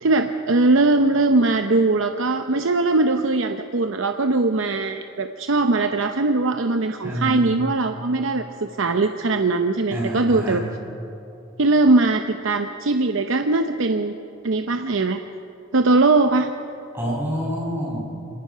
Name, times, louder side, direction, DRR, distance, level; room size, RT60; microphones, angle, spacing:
voice 1, 0.0-10.6 11.6-14.1 14.4-15.2 15.7-16.5, right 3 dB, 70° right, 7 dB, 0.7 m, -20 dB
voice 2, 7.0-7.4 9.9-10.6 16.9-18.1, equal, 10° right, -4 dB, 6.1 m, -27 dB
25.5 x 19.0 x 5.7 m, 2.8 s
head